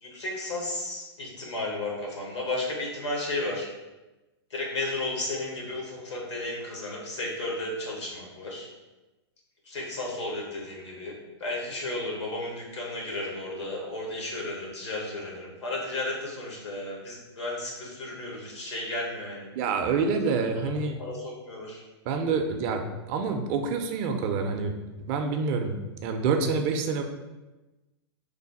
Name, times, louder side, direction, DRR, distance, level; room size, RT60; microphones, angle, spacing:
voice 1, 0.0-3.7 4.5-8.7 9.7-11.1 11.4-19.6 20.4-20.5 21.0-21.8, left 2 dB, 85° left, -2 dB, 1.2 m, -33 dB
voice 2, 19.6-21.0 22.1-24.7 25.1-25.8 26.0-27.0, right 4 dB, 40° right, 5 dB, 0.4 m, -27 dB
3.2 x 2.1 x 4.0 m, 1.1 s
hypercardioid pair, 120°, 14 cm